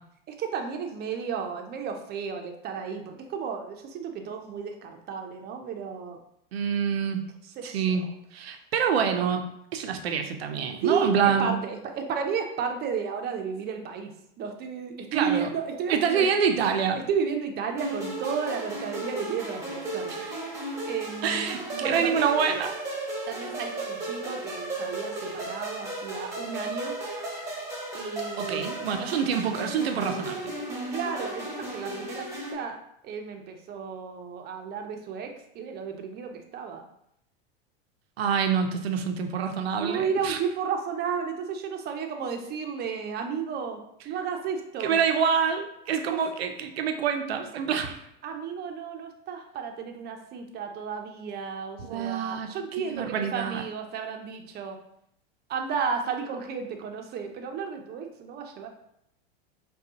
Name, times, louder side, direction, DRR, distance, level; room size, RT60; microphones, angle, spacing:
voice 1, 0.3-6.2 7.6-8.1 10.8-14.1 14.4-16.3 17.1-20.3 20.9-22.4 23.3-26.9 27.9-28.7 30.9-32.8 33.0-35.3 35.5-36.8 39.8-43.8 44.0-45.0 46.1-46.2 48.2-54.8 55.5-58.7, right 6 dB, 35° right, 4 dB, 0.6 m, -33 dB
voice 2, 6.5-7.3 7.6-8.0 8.3-9.4 9.7-11.5 15.1-15.5 15.9-17.0 20.1-20.3 21.2-22.7 28.4-30.5 38.2-40.4 44.8-48.0 51.8-52.5 52.9-53.6, right 7 dB, 90° right, 5 dB, 0.6 m, -26 dB
sound 1, 17.8-32.5, right 2 dB, 10° right, 1.2 m, -35 dB
5.0 x 2.3 x 2.8 m, 0.75 s
hypercardioid pair, 105°, 30 cm